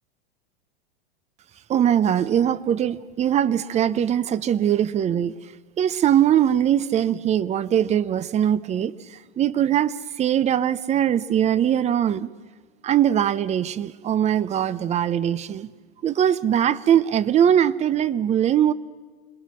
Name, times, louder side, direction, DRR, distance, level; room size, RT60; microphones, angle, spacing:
voice 1, 1.7-5.3 5.8-12.3 12.8-15.7 16.0-18.7, right 10 dB, 20° right, 18 dB, 0.6 m, -21 dB
27.0 x 20.5 x 6.3 m, 1.5 s
hypercardioid pair, 120°, 31 cm